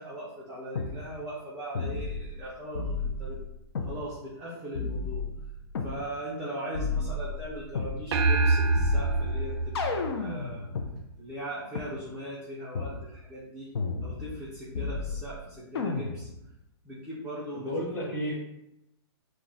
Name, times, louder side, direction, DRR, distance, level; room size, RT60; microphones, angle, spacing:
voice 1, 0.0-3.4 3.8-5.2 5.8-10.7 11.2-13.7 14.0-16.3 16.8-17.7, right 1 dB, 5° right, -10 dB, 0.4 m, -39 dB
sound 1, 0.8-0.9 1.8-2.4 2.8-4.0 4.8-6.0 6.7-8.0 8.8-10.9 11.8-11.9 12.8-13.0 13.8-14.5 14.8-15.4 15.8-16.4, left 4 dB, 65° left, 0.5 m, -32 dB
sound 2, 8.1-10.8, right 3 dB, 70° right, 0.4 m, -26 dB
voice 2, 17.5-18.4, equal, 15° left, -7 dB, 0.9 m, -33 dB
2.3 x 2.0 x 3.8 m, 0.84 s
hypercardioid pair, 155°, 14 cm